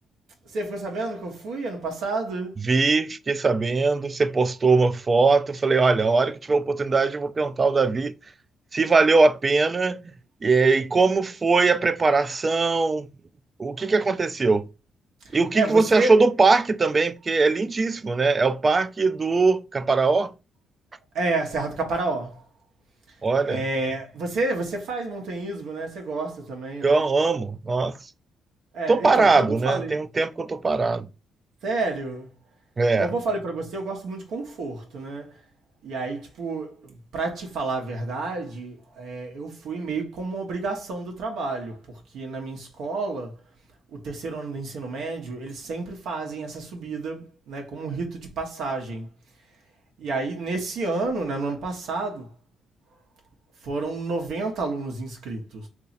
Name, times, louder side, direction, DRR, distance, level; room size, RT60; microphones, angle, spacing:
voice 1, 0.4-2.6 15.2-16.2 21.1-22.4 23.4-27.1 28.7-30.0 31.6-32.3 33.0-35.4 35.8-43.4 43.9-49.1 50.0-52.3 53.6-55.7, right 3 dB, 75° right, 1.0 m, -30 dB
voice 2, 2.7-8.1 8.7-10.0 10.4-13.1 13.6-14.7 15.3-20.3 23.2-23.6 26.8-27.9 28.9-31.1 32.8-33.1, right 3 dB, 30° right, 0.3 m, -21 dB
2.9 x 2.7 x 4.1 m
cardioid pair, 90°, 0 cm